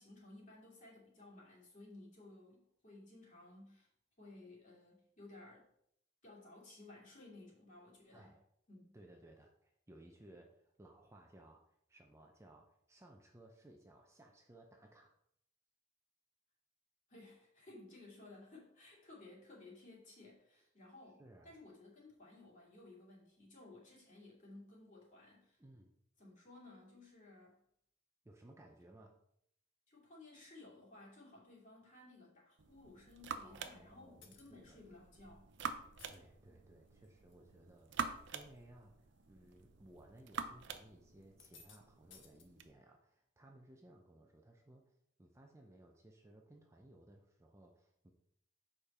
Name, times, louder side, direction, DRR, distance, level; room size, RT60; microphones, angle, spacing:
voice 1, 0.0-3.9 4.2-5.7 6.2-8.3 8.7-9.0 17.1-25.6 26.2-27.6 29.9-35.5, left 2 dB, 40° left, -4 dB, 2.6 m, -57 dB
voice 2, 8.1-8.5 8.9-15.2 21.2-21.6 25.6-25.9 28.2-29.2 33.4-34.8 36.1-48.1, right 1 dB, 15° right, 2 dB, 0.5 m, -61 dB
sound 1, 32.6-42.7, right 5 dB, 60° right, 0.6 m, -47 dB
sound 2, 34.2-34.6 35.8-36.2 36.9-37.3 37.8-38.2 38.5-38.6 39.5-39.6 41.2-41.8 42.1-42.4, left 6 dB, 65° left, 1.0 m, -61 dB
6.9 x 5.1 x 4.3 m, 0.73 s
head